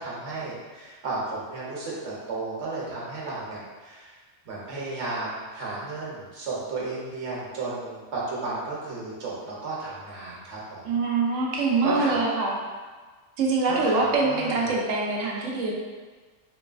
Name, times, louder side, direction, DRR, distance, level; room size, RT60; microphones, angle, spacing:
voice 1, 0.0-4.2 4.4-11.0 11.8-12.2 13.7-14.7, right 3 dB, 70° right, -5 dB, 1.1 m, -33 dB
voice 2, 10.8-12.6 13.4-15.7, right 3 dB, 85° right, -2 dB, 1.0 m, -24 dB
3.1 x 3.0 x 2.4 m, 1.4 s
omnidirectional pair, 1.3 m